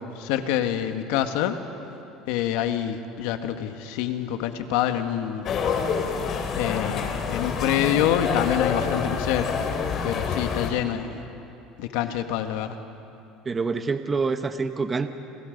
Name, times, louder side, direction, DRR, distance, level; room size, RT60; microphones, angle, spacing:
voice 1, 0.0-1.6 2.3-5.5 6.6-9.6 10.0-11.2 11.8-12.8, left 10 dB, 80° left, 7 dB, 1.7 m, -26 dB
sound 1, 5.5-10.7, left 6 dB, 45° left, 3.0 m, -27 dB
voice 2, 13.4-15.1, right 4 dB, 20° right, 8 dB, 1.2 m, -26 dB
29.5 x 27.0 x 5.3 m, 2.8 s
cardioid pair, 125°, 0 cm